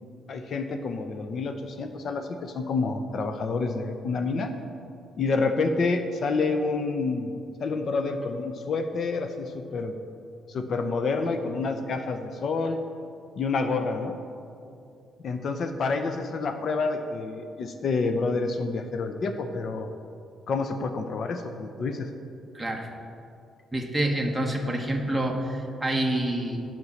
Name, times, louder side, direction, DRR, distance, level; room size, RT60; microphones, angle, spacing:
voice 1, 0.3-4.5 5.2-7.3 7.6-10.0 10.5-12.8 13.4-14.2 15.2-19.9 20.5-22.1, left 4 dB, 60° left, 7 dB, 0.6 m, -28 dB
voice 2, 22.5-22.9 23.7-26.6, right 1 dB, 5° right, 0 dB, 1.0 m, -27 dB
8.0 x 5.3 x 7.0 m, 2.5 s
cardioid pair, 90°, 0 cm